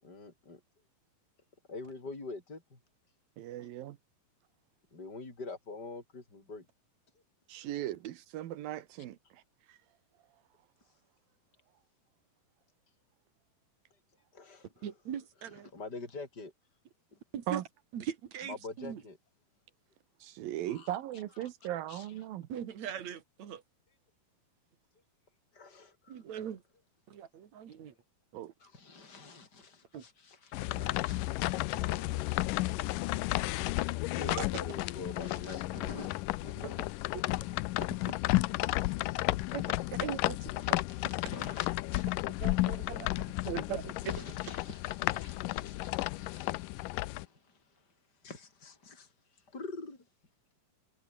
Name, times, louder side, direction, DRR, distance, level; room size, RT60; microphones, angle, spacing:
voice 1, 0.0-0.6 1.7-2.8 4.9-6.7 7.6-7.7 14.3-14.9 15.7-16.5 17.1-17.2 18.5-19.2 20.7-21.0 21.4-21.5 21.9-22.1 25.5-26.2 27.1-27.2 28.6-33.3 34.1-36.9 37.3-39.6 40.5-42.1 44.0-47.8 48.2-49.1 49.5-50.1, left 3 dB, 25° left, 6.9 m, -46 dB
voice 2, 3.4-4.0 7.5-9.4 9.7-9.8 17.5-17.6 20.2-22.5 28.3-28.5, right 13 dB, 70° right, 2.8 m, -38 dB
voice 3, 14.8-15.7 17.3-17.6 17.9-19.0 22.5-23.6 26.1-26.6 27.1-27.9 28.3-28.4 29.9-30.0 30.7-31.0 31.7-31.8 34.2-34.4 36.5-36.7 39.5-39.7 40.0-40.8 42.4-44.2, right 9 dB, 50° right, 3.0 m, -40 dB
sound 1, 30.5-47.3, left 19 dB, 85° left, 1.9 m, -33 dB
omnidirectional pair, 4.5 m